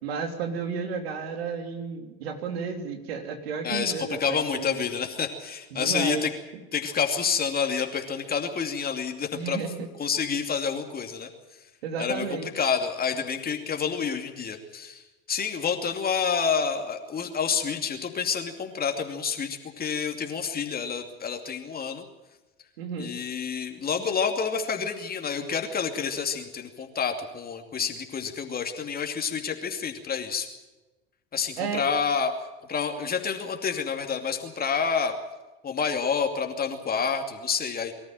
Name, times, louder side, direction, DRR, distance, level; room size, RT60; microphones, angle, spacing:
voice 1, 0.0-4.9 5.7-6.3 9.3-9.9 11.8-12.5 22.8-23.1 31.6-31.9, right 5 dB, 80° right, 5 dB, 3.3 m, -32 dB
voice 2, 3.6-6.3 6.7-9.6 10.0-11.3 12.0-15.0 15.3-22.0 23.0-30.5 31.3-32.3 32.7-35.2 35.6-37.9, left 6 dB, 30° left, 4 dB, 2.6 m, -28 dB
23.5 x 13.5 x 9.0 m, 1.1 s
hypercardioid pair, 85°, 30 cm